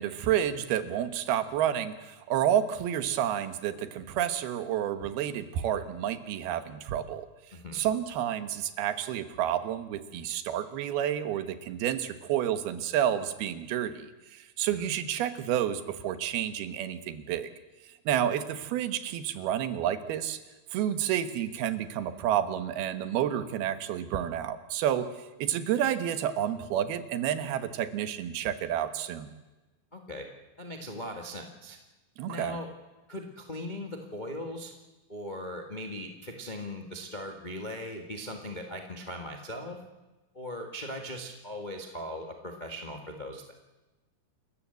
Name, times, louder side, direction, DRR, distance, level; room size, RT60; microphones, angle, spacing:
voice 1, 0.0-7.3 7.7-17.5 17.9-20.4 20.7-25.1 25.4-29.3 32.2-32.6, right 10 dB, 80° right, 12 dB, 3.1 m, -30 dB
voice 2, 7.5-7.8 14.7-14.9 29.9-30.2 30.6-31.8 32.3-32.7 33.1-34.7 35.1-39.8 40.3-43.4, left 1 dB, 90° left, 3 dB, 0.4 m, -39 dB
28.5 x 14.5 x 8.1 m, 1.1 s
omnidirectional pair, 4.5 m